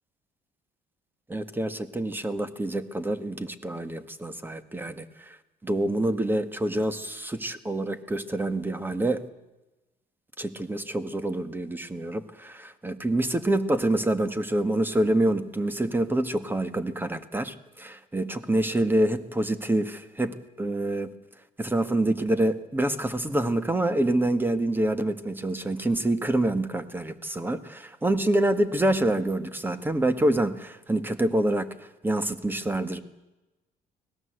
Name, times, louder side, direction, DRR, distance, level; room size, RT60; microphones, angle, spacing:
voice 1, 1.3-5.4 5.6-9.2 10.4-21.1 21.6-33.0, right 1 dB, 10° right, 11 dB, 1.7 m, -26 dB
25.0 x 18.0 x 8.1 m, 1.0 s
cardioid pair, 110°, 17 cm